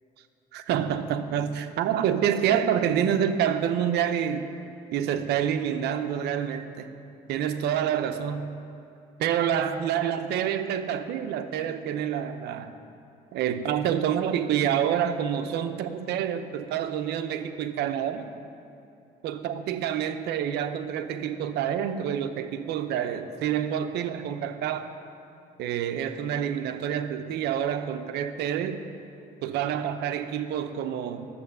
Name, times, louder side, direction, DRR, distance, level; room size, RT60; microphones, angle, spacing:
voice 1, 0.5-4.5 4.9-6.9 7.3-8.6 9.2-12.7 13.3-18.3 19.2-24.9 25.6-28.8 29.4-31.3, right 9 dB, 80° right, 9 dB, 0.8 m, -27 dB
11.5 x 7.7 x 6.7 m, 2.7 s
cardioid pair, 110°, 17 cm